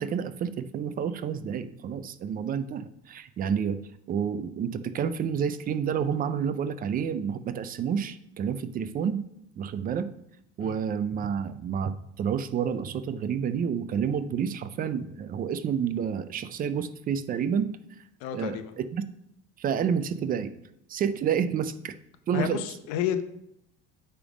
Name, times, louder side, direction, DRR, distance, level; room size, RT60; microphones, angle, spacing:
voice 1, 0.0-3.8 4.1-9.2 9.6-10.1 10.6-17.7 18.3-19.0 19.6-20.5 20.9-22.0 22.3-22.6, right 7 dB, 30° right, 13 dB, 0.4 m, -29 dB
voice 2, 18.2-18.7 22.3-23.2, left 10 dB, 80° left, 10 dB, 0.8 m, -30 dB
8.6 x 3.6 x 5.0 m, 0.78 s
cardioid pair, 140°, 30 cm